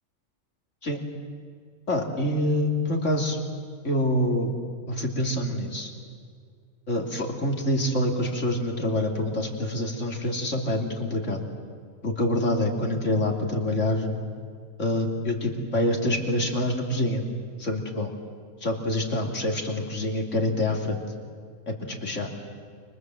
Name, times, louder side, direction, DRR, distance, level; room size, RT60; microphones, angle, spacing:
voice 1, 1.9-3.4 3.8-4.6 4.9-5.9 6.9-11.4 12.0-14.1 14.8-17.2 17.6-18.1 18.6-21.0 21.7-22.3, left 1 dB, 60° left, 2 dB, 3.5 m, -26 dB
29.5 x 25.5 x 7.8 m, 2.1 s
omnidirectional pair, 1.4 m